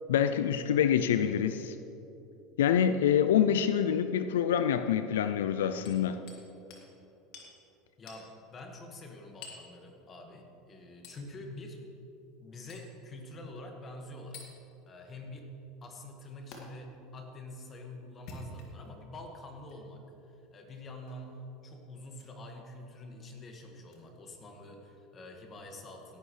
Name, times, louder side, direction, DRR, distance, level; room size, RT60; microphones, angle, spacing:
voice 1, 0.1-1.8 2.6-6.2, left 9 dB, 80° left, 11 dB, 0.4 m, -26 dB
Hammer, 5.8-6.4 6.7-6.9 7.3-7.5 8.1-8.3 9.4-9.7 11.0-11.2 12.7-12.9 14.3-14.5 16.5-16.6 18.1-18.9 19.6-19.8 21.1-21.3 22.1-22.3 23.9-24.0, left 2 dB, 60° left, 2.2 m, -48 dB
voice 2, 8.0-11.8 12.4-14.4 14.9-15.5 15.8-26.2, left 1 dB, 35° left, 2 dB, 1.8 m, -46 dB
17.0 x 10.0 x 3.3 m, 2.9 s
hypercardioid pair, 85°, 0 cm